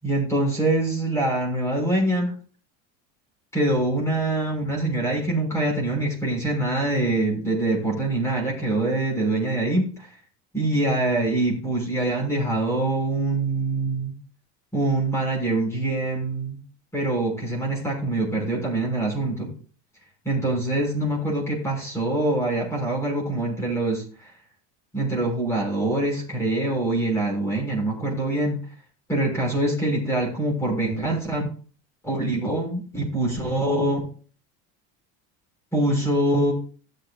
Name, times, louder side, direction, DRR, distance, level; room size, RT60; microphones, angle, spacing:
voice 1, 0.0-2.3 3.5-10.1 10.5-14.1 14.7-16.6 16.9-19.5 20.2-24.3 24.9-28.6 29.1-31.5 32.0-34.1 35.7-36.5, right 2 dB, 10° left, -3 dB, 5.8 m, -24 dB
18.5 x 7.7 x 2.5 m, 0.41 s
cardioid pair, 170°, 34 cm